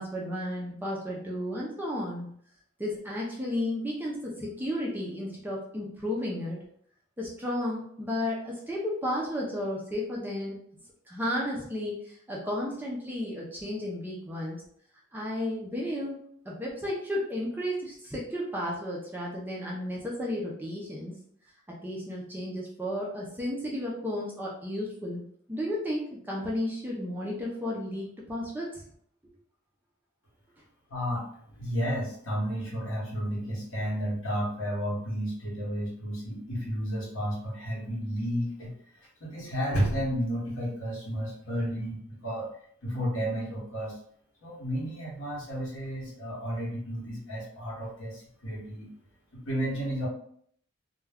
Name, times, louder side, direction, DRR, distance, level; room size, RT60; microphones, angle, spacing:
voice 1, 0.0-2.3 2.8-6.6 7.2-10.6 11.1-14.6 15.1-16.2 16.5-21.1 21.7-28.8, left 1 dB, 10° right, -4 dB, 0.4 m, -33 dB
voice 2, 30.9-42.5 42.8-44.0 44.4-48.9 49.3-50.1, equal, 60° left, -4 dB, 1.0 m, -32 dB
2.2 x 2.2 x 3.4 m, 0.64 s
head